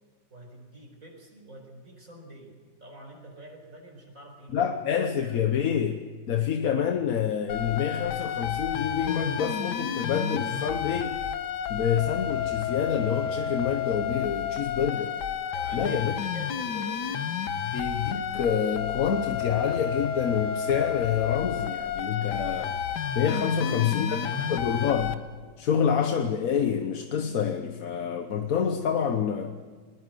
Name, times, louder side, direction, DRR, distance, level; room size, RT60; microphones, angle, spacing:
voice 1, 0.3-2.5 2.8-5.5 15.5-17.2 23.5-24.6, right 1 dB, 50° right, 1 dB, 5.2 m, -47 dB
voice 2, 4.5-6.0 6.3-11.2 11.7-15.2 15.7-16.2 17.7-22.8 23.1-24.2 24.5-25.2 25.6-29.6, left 7 dB, 55° left, 7 dB, 1.3 m, -27 dB
sound 1, 7.5-25.1, left 8 dB, 75° left, 1.6 m, -31 dB
20.5 x 20.5 x 7.8 m, 1.5 s
omnidirectional pair, 1.9 m